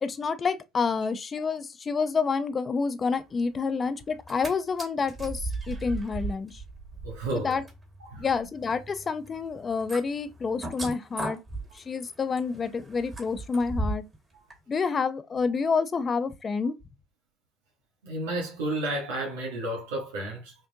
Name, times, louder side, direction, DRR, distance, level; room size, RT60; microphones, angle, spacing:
voice 1, 0.0-6.6 7.4-7.6 8.2-11.4 11.7-14.0 14.7-16.7, left 5 dB, 35° left, 0.6 m, -28 dB
sound 1, 4.1-4.5 4.8-14.2 14.5-14.6, right 2 dB, 25° right, 1.9 m, -37 dB
voice 2, 7.0-7.5 8.1-8.2 18.0-20.5, right 1 dB, 90° right, 1.3 m, -31 dB
5.8 x 2.5 x 2.7 m
hypercardioid pair, 75°, 0 cm